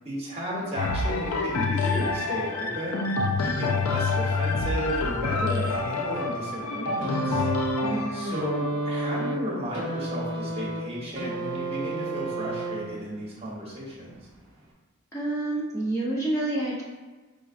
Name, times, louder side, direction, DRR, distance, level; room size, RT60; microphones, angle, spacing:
voice 1, 0.0-3.1 3.4-7.5 8.1-14.2, equal, 25° right, -5 dB, 1.0 m, -34 dB
sound 1, 0.8-10.6 11.2-11.3, left 3 dB, 80° left, 0.4 m, -28 dB
sound 2, 7.0-13.2 14.2-14.3, right 2 dB, 55° right, 0.9 m, -31 dB
voice 2, 7.8-8.5 15.1-16.8, right 2 dB, 15° left, -7 dB, 0.6 m, -29 dB
5.2 x 3.7 x 2.5 m, 1.3 s
head